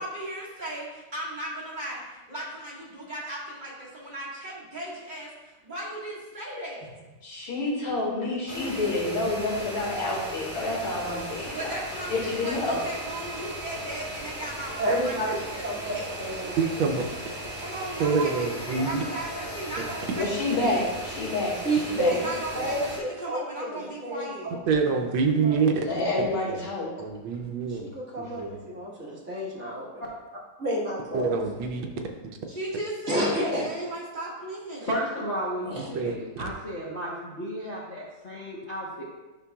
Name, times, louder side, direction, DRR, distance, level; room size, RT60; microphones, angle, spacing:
voice 1, 0.0-6.9 7.4-7.5 11.5-16.9 17.6-20.9 22.1-24.6 32.5-34.9, right 1 dB, 25° right, -6 dB, 1.5 m, -36 dB
voice 2, 7.2-11.7 12.1-12.8 20.1-21.5 21.8-22.1 22.5-22.6 25.7-26.9, left 2 dB, 75° left, -5 dB, 2.8 m, -28 dB
sound 1, 8.5-23.0, right 1 dB, 10° right, 1.4 m, -37 dB
voice 3, 14.8-15.4 15.6-16.5 21.6-24.6 25.4-25.5 27.7-30.0 30.6-31.4 33.1-33.6 35.6-35.9, right 1 dB, 40° right, -5 dB, 1.5 m, -30 dB
voice 4, 16.6-17.0 18.0-19.0 24.7-25.7 26.5-26.6 27.0-28.8 31.1-31.9 35.8-36.1, right 5 dB, 75° right, 3 dB, 1.4 m, -26 dB
voice 5, 34.8-39.0, equal, 40° left, -7 dB, 1.1 m, -33 dB
9.7 x 5.9 x 2.3 m, 1.2 s
omnidirectional pair, 2.3 m